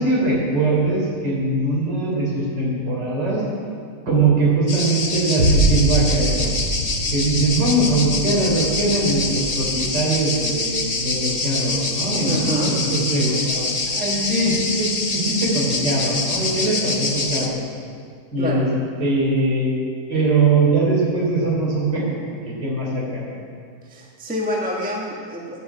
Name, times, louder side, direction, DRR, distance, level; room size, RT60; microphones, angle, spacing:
voice 1, 0.0-3.4 4.1-6.5 7.1-17.6 18.3-18.7 19.0-19.7 20.1-23.3, right 2 dB, 55° right, -4 dB, 4.3 m, -21 dB
sound 1, 4.7-17.5, left 3 dB, 65° left, 0.4 m, -25 dB
sound 2, 5.4-13.9 14.4-14.5, right 1 dB, 85° right, 2.8 m, -26 dB
voice 2, 12.2-12.8 18.4-18.7 23.8-25.6, equal, 5° right, -3 dB, 1.3 m, -26 dB
11.5 x 8.9 x 8.4 m, 2.2 s
omnidirectional pair, 2.3 m